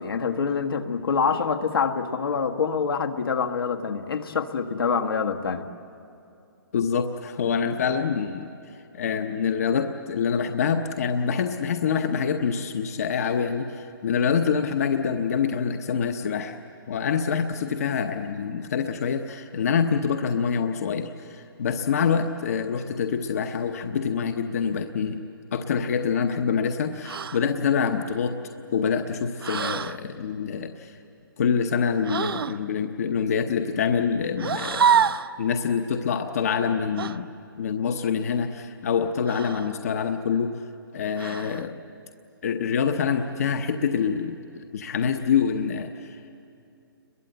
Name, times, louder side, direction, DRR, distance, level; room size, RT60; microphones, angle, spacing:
voice 1, 0.0-5.7, left 5 dB, 75° left, 4 dB, 1.6 m, -26 dB
voice 2, 6.7-16.6 16.9-25.2 25.5-28.4 28.7-31.0 31.4-35.1 35.4-37.3 37.5-40.5 40.9-41.8 42.4-46.2, left 6 dB, 40° left, 7 dB, 0.9 m, -26 dB
sound 1, 27.0-27.4 29.4-30.0 32.0-32.6 34.4-35.3 37.0-37.2 39.3-39.8 41.2-41.7, right 7 dB, 75° right, 0.7 m, -26 dB
29.5 x 22.5 x 7.9 m, 2.6 s
hypercardioid pair, 175°, 12 cm